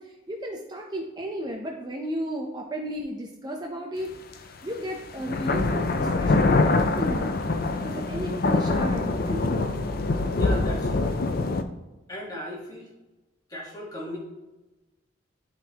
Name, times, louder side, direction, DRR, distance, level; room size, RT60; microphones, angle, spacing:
voice 1, 0.0-4.1 4.4-7.3 7.7-10.0, equal, 20° right, 0 dB, 0.7 m, -34 dB
sound 1, 4.3-4.4 5.2-11.6, left 3 dB, 50° left, 0.5 m, -24 dB
voice 2, 10.3-11.2 12.1-12.9 13.5-14.2, left 1 dB, 20° left, -3 dB, 1.6 m, -36 dB
11.0 x 4.0 x 3.0 m, 1.1 s
head